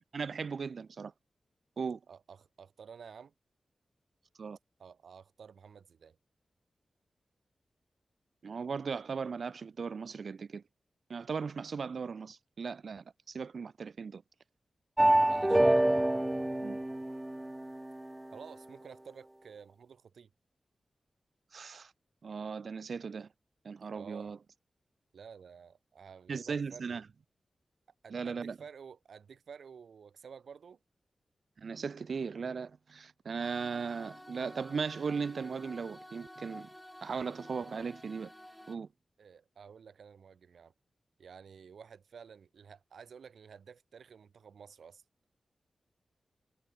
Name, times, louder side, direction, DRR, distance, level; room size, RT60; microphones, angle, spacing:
voice 1, 0.1-1.1 1.8-2.0 4.4-4.6 8.4-10.6 11.1-14.2 16.6-16.8 21.5-21.9 22.2-23.3 23.6-24.4 26.3-27.0 28.1-28.6 31.6-36.7 37.0-38.3 38.7-38.9, right 5 dB, 65° right, 0.9 m, -37 dB
voice 2, 2.1-3.3 4.8-6.2 15.3-15.9 18.3-20.3 23.9-24.3 25.1-27.0 28.0-30.8 39.2-40.7 41.2-45.0, right 6 dB, 90° right, 3.9 m, -52 dB
sound 1, 15.0-17.9, right 1 dB, 10° right, 0.3 m, -26 dB
sound 2, 33.4-38.8, equal, 5° left, 3.4 m, -51 dB
wide cardioid pair, 130°, 0 cm